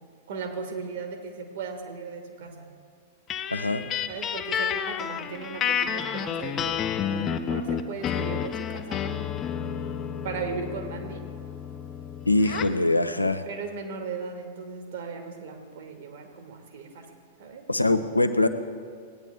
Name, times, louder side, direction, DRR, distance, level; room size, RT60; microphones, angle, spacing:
voice 1, 0.3-2.7 4.1-9.1 10.2-11.3 13.4-17.1 17.4-17.7, right 5 dB, 55° right, 5 dB, 1.5 m, -37 dB
sound 1, 3.3-12.8, left 8 dB, 25° left, 0.6 m, -30 dB
voice 2, 3.5-3.9 12.3-13.4 17.7-18.5, left 2 dB, 90° left, 9 dB, 0.6 m, -23 dB
17.0 x 9.5 x 3.4 m, 2.1 s
figure-of-eight pair, 100°, 0 cm